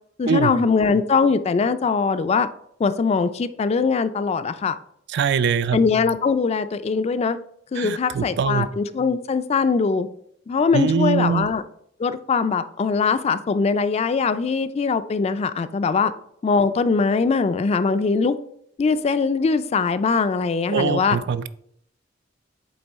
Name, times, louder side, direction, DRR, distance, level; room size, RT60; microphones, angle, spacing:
voice 1, 0.2-2.5 2.8-4.8 5.7-7.4 7.7-10.1 10.5-11.6 12.0-16.1 16.4-18.4 18.8-21.2, left 5 dB, 35° left, 12 dB, 0.3 m, -21 dB
voice 2, 5.1-5.8 7.8-8.7 10.7-11.5 20.7-21.5, right 5 dB, 60° right, 14 dB, 0.3 m, -22 dB
8.0 x 3.1 x 4.1 m, 0.69 s
head